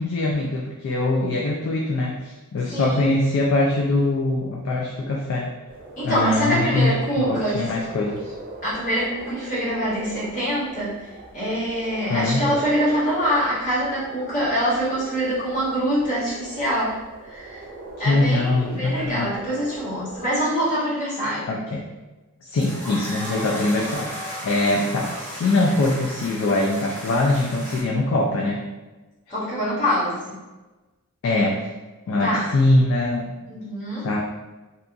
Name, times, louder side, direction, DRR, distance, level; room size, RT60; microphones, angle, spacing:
voice 1, 0.0-5.5 6.0-8.3 12.1-12.4 18.0-19.3 21.5-21.8 22.5-28.6 31.2-31.7 32.1-33.4 34.0-34.2, left 2 dB, 60° left, -1 dB, 0.3 m, -22 dB
voice 2, 2.7-3.1 6.0-7.7 8.6-11.1 11.3-17.0 17.2-17.6 18.0-21.5 29.3-30.4 32.2-32.5 33.5-34.1, equal, 35° left, -9 dB, 1.1 m, -24 dB
sound 1, 5.7-20.4, right 2 dB, 40° right, 0.5 m, -40 dB
sound 2, 22.6-27.8, equal, 10° left, 0.7 m, -35 dB
2.7 x 2.3 x 2.5 m, 1.1 s
head